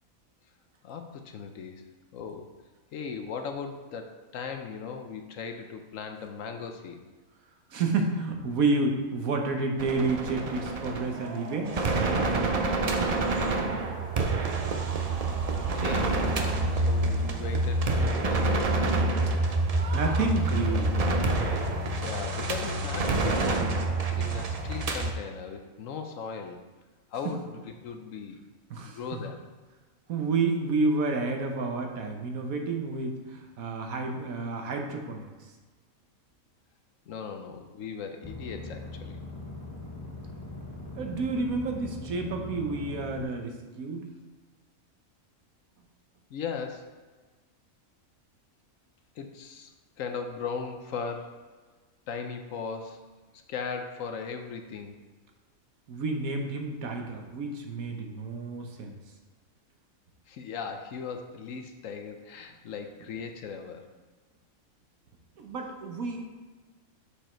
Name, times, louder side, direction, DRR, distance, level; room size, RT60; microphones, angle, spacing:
voice 1, 0.8-1.8 2.1-2.5 2.9-7.0 15.5-18.7 22.0-23.8 24.1-26.6 27.1-28.4 28.8-29.4 37.1-39.1 46.3-46.9 49.2-51.4 52.1-53.0 53.5-55.0 60.3-63.9, left 5 dB, 70° left, 6 dB, 1.0 m, -38 dB
voice 2, 7.7-12.6 19.9-20.9 27.2-27.3 28.7-29.0 30.1-35.2 41.0-43.5 43.8-44.0 55.9-58.9 65.4-66.3, right 3 dB, 75° right, 3 dB, 1.3 m, -30 dB
sound 1, 9.8-25.1, right 2 dB, 55° right, 0.4 m, -27 dB
sound 2, 38.2-43.2, left 2 dB, 15° left, 0.8 m, -41 dB
6.8 x 5.1 x 4.4 m, 1.3 s
omnidirectional pair, 1.5 m